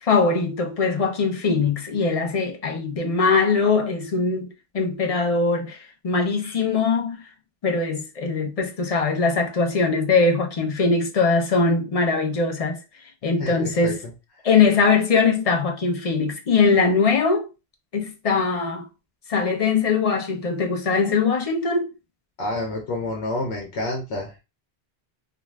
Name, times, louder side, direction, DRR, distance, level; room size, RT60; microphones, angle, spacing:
voice 1, 0.0-4.5 4.7-7.2 7.6-12.8 13.2-14.0 14.4-17.5 17.9-18.9 19.3-21.9, left 4 dB, 45° left, 0.5 m, -21 dB
voice 2, 13.4-13.9 22.4-24.4, left 2 dB, 85° left, 1.0 m, -29 dB
2.4 x 2.3 x 3.1 m
omnidirectional pair, 1.1 m